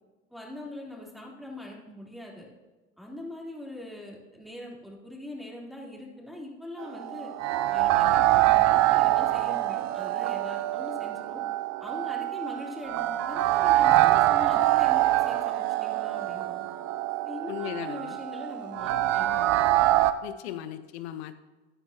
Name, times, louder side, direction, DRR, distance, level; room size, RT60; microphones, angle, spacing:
voice 1, 0.3-2.5 3.0-7.3 7.7-11.4 11.8-16.7 17.2-19.7, left 1 dB, ahead, -3 dB, 3.4 m, -42 dB
sound 1, 6.8-20.1, right 15 dB, 55° right, 0.7 m, -25 dB
voice 2, 17.5-18.2 20.2-21.4, left 12 dB, 75° left, 12 dB, 0.8 m, -37 dB
14.5 x 9.6 x 2.8 m, 1.2 s
hypercardioid pair, 75°, 32 cm